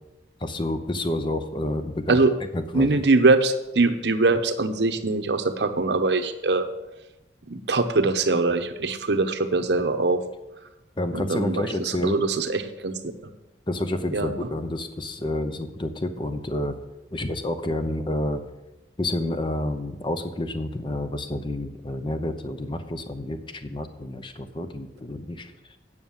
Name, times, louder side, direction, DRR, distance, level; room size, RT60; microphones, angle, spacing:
voice 1, 0.4-2.2 2.5-3.0 11.0-12.2 13.7-16.8 17.1-18.4 19.0-25.5, left 1 dB, 25° left, 9 dB, 0.8 m, -29 dB
voice 2, 2.7-6.7 7.5-10.2 11.1-12.9 14.1-14.3, right 3 dB, 70° right, 8 dB, 0.9 m, -22 dB
9.4 x 6.6 x 7.1 m, 1.0 s
head